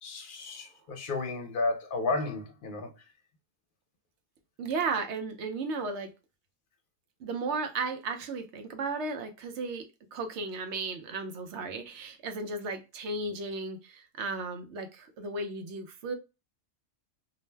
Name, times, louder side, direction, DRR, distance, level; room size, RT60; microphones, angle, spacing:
voice 1, 0.0-3.1, left 3 dB, 55° left, 0.7 m, -33 dB
voice 2, 4.6-6.1 7.2-16.1, right 3 dB, 85° right, 0.9 m, -35 dB
2.5 x 2.1 x 3.2 m
omnidirectional pair, 1.2 m